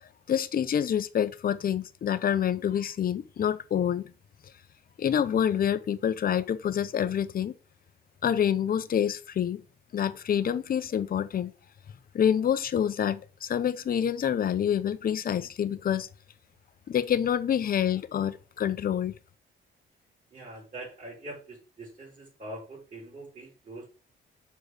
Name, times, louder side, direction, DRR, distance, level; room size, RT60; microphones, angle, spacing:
voice 1, 0.0-4.1 5.0-7.5 8.2-9.6 9.9-11.5 12.1-16.1 16.9-19.1, left 9 dB, 45° left, 0.7 m, -27 dB
voice 2, 20.3-23.9, right 1 dB, 40° right, 4.6 m, -43 dB
6.4 x 4.6 x 4.9 m
cardioid pair, 90°, 20 cm